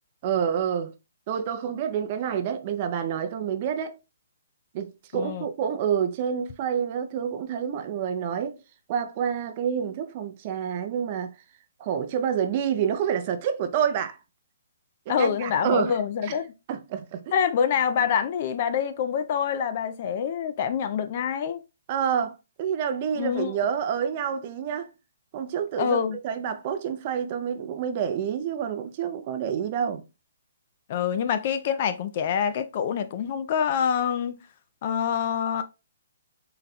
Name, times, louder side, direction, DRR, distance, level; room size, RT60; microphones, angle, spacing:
voice 1, 0.2-0.9 1.3-4.0 4.7-8.6 8.9-11.3 11.8-14.2 15.1-16.0 16.2-16.4 16.7-17.3 21.9-24.9 25.3-26.0 26.2-30.0, right 8 dB, 35° right, 0.5 m, -28 dB
voice 2, 5.1-5.5 15.1-16.5 17.3-21.6 23.2-23.6 25.8-26.2 30.9-34.4 34.8-35.6, left 7 dB, 40° left, 0.4 m, -26 dB
3.9 x 2.2 x 4.0 m
hypercardioid pair, 160°, 0 cm